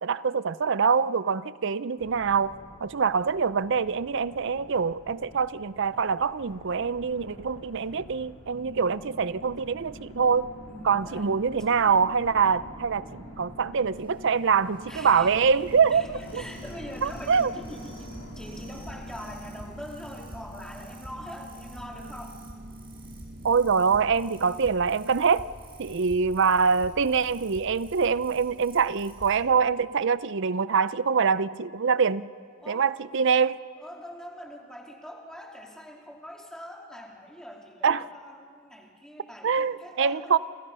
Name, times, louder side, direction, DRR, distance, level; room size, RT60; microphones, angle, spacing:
voice 1, 0.0-2.5 2.8-10.5 10.8-16.4 17.0-17.5 23.4-25.5 25.8-32.3 32.7-33.6 37.8-38.0 39.4-40.4, right 5 dB, 60° right, 16 dB, 0.5 m, -24 dB
sound 1, 2.0-20.4, left 1 dB, 70° left, 3.4 m, -48 dB
sound 2, 8.5-24.7, right 1 dB, 40° right, 1.0 m, -46 dB
voice 2, 10.7-11.3 14.9-15.6 15.9-22.4 32.6-32.9 33.8-40.4, equal, 5° left, 0 dB, 3.0 m, -43 dB
sound 3, 14.0-29.4, right 1 dB, 25° right, 5.3 m, -48 dB
29.5 x 26.5 x 5.6 m, 2.1 s
head